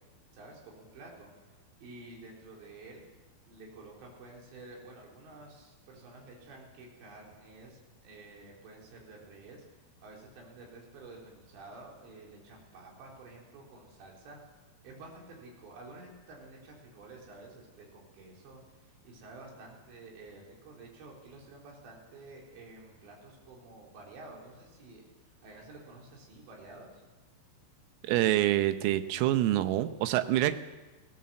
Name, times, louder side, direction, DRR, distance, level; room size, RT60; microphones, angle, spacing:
voice 1, 0.3-3.1 3.5-9.6 10.0-14.4 14.8-25.0 25.4-27.0, right 2 dB, 60° right, -2 dB, 6.2 m, -51 dB
voice 2, 28.0-30.6, right 14 dB, 90° right, 10 dB, 3.6 m, -26 dB
21.0 x 16.5 x 7.7 m, 1.2 s
omnidirectional pair, 5.9 m